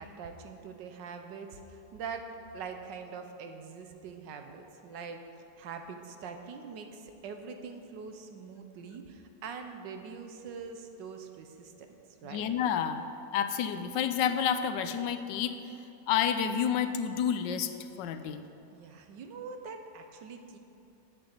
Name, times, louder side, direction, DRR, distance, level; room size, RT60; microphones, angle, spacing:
voice 1, 0.0-2.3 2.5-5.2 5.6-11.9 12.2-12.5 18.7-20.6, right 5 dB, 80° right, 6 dB, 1.5 m, -43 dB
voice 2, 12.3-13.0 13.3-15.6 16.1-17.7 18.0-18.4, left 8 dB, 90° left, 9 dB, 1.3 m, -29 dB
7.8 x 6.8 x 8.0 m, 2.7 s
omnidirectional pair, 1.9 m